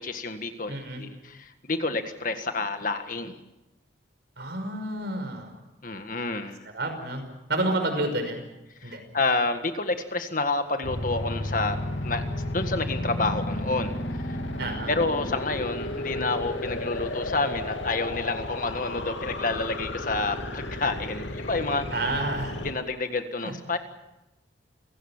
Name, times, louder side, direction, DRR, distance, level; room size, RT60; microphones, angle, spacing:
voice 1, 0.0-3.3 5.8-6.6 8.8-11.8 12.0-12.2 12.5-14.4 14.9-21.8 22.6-23.8, left 3 dB, 45° left, 7 dB, 1.8 m, -29 dB
voice 2, 0.7-1.0 4.4-5.5 6.7-7.2 7.5-8.4 8.8-9.0 14.6-14.9 21.9-22.6 23.4-23.5, right 2 dB, 60° right, 6 dB, 5.7 m, -29 dB
sound 1, 10.8-22.7, left 1 dB, 80° left, 2.6 m, -33 dB
29.0 x 17.5 x 7.4 m, 0.96 s
head